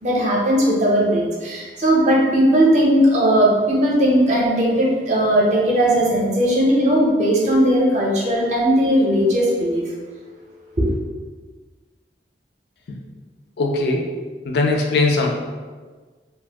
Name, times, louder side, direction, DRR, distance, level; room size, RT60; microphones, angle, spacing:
voice 1, 0.0-9.8 10.8-10.9, equal, 40° right, -3 dB, 0.6 m, -17 dB
voice 2, 13.6-14.1 14.4-15.3, left 3 dB, 70° left, 1 dB, 0.4 m, -20 dB
2.4 x 2.3 x 3.3 m, 1.4 s
head